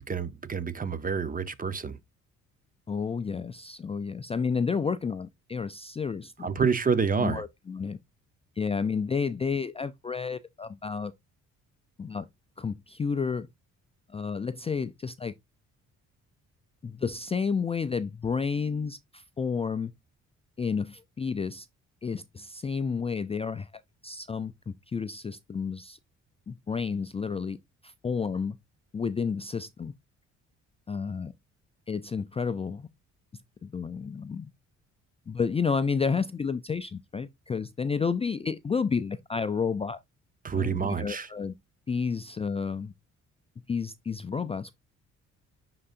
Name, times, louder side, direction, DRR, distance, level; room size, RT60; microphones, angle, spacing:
voice 1, 0.0-2.0 6.4-7.4 40.4-41.3, right 6 dB, 30° right, 0.8 m, -28 dB
voice 2, 2.9-6.5 7.2-8.0 8.6-11.1 12.0-12.3 12.6-13.5 14.1-15.3 16.8-19.9 20.6-21.7 22.0-23.7 24.0-26.0 26.5-27.6 27.8-28.6 28.9-29.9 30.9-31.3 31.9-32.9 33.6-34.5 35.3-40.0 40.5-41.5 41.9-42.9 43.7-44.7, left 5 dB, 20° left, 0.4 m, -31 dB
9.8 x 3.8 x 2.5 m
cardioid pair, 90°, 30 cm